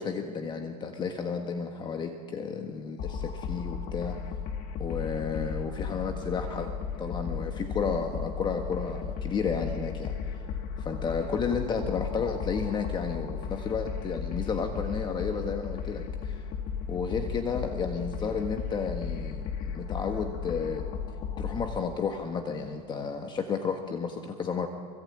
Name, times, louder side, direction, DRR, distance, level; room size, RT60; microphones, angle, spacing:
voice 1, 0.0-4.2 4.8-10.4 10.8-16.4 16.9-20.9 21.4-24.7, left 5 dB, 25° left, 5 dB, 1.5 m, -32 dB
sound 1, 3.0-21.8, left 6 dB, 45° left, 2.7 m, -35 dB
24.5 x 24.5 x 8.8 m, 2.2 s
supercardioid pair, 135°, 19 cm